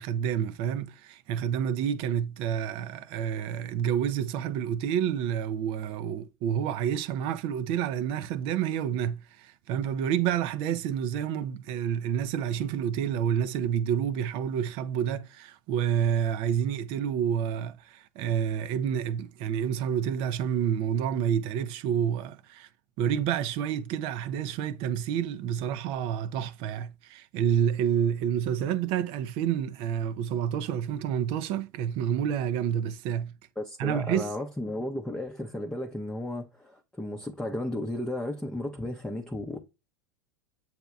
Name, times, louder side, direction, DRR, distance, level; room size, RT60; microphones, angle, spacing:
voice 1, 0.0-22.7 23.0-33.3 33.8-34.3, right 9 dB, 50° right, 0.5 m, -29 dB
voice 2, 33.6-39.6, left 1 dB, 5° left, 0.7 m, -34 dB
7.8 x 2.8 x 2.3 m
hypercardioid pair, 90°, 12 cm